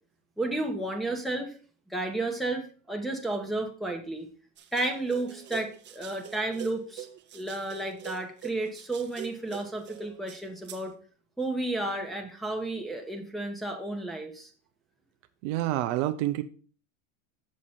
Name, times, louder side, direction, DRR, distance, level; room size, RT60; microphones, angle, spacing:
voice 1, 0.4-1.6 1.9-4.3 4.7-7.1 7.3-10.9 11.4-14.5, right 2 dB, ahead, 1 dB, 1.2 m, -32 dB
sound 1, 4.6-10.8, right 10 dB, 25° right, 0.9 m, -45 dB
voice 2, 15.4-16.4, right 14 dB, 60° right, 10 dB, 0.6 m, -28 dB
7.3 x 6.3 x 4.2 m, 0.41 s
supercardioid pair, 125°, 40 cm